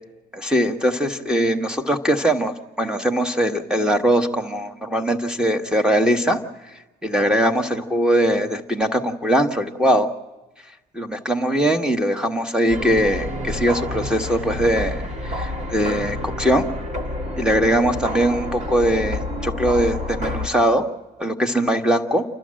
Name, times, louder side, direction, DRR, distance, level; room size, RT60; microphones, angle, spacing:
voice 1, 0.3-6.4 7.0-10.1 10.9-16.7 17.4-20.9 21.2-22.2, equal, 5° right, 6 dB, 1.6 m, -21 dB
sound 1, 12.7-20.5, left 1 dB, 45° right, 2.0 m, -29 dB
29.0 x 12.0 x 7.7 m, 1.1 s
cardioid pair, 110°, 17 cm